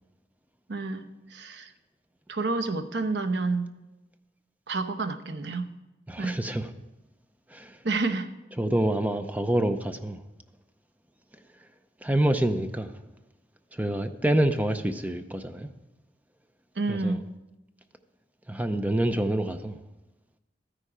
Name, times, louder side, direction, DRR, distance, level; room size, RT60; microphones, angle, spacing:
voice 1, 0.7-1.7 2.3-3.7 4.7-5.7 6.2-6.4 7.8-8.3 16.8-17.2, right 3 dB, 70° right, 0.8 m, -29 dB
voice 2, 6.1-6.7 7.5-7.8 8.6-10.2 12.0-12.9 13.7-15.7 16.9-17.2 18.5-19.8, right 1 dB, 10° right, 0.5 m, -27 dB
12.5 x 9.9 x 4.9 m
head